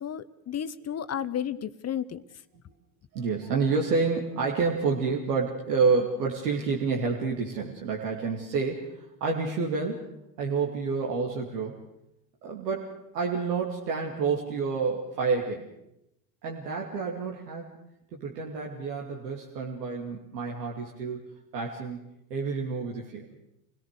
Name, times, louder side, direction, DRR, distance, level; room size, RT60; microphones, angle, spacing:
voice 1, 0.0-2.2, left 9 dB, 35° left, 13 dB, 0.9 m, -32 dB
voice 2, 3.1-10.1 10.4-11.8 12.4-15.7 16.4-17.7 18.1-23.3, right 4 dB, 85° right, -2 dB, 2.7 m, -29 dB
27.5 x 17.0 x 6.7 m, 0.83 s
hypercardioid pair, 75°, 47 cm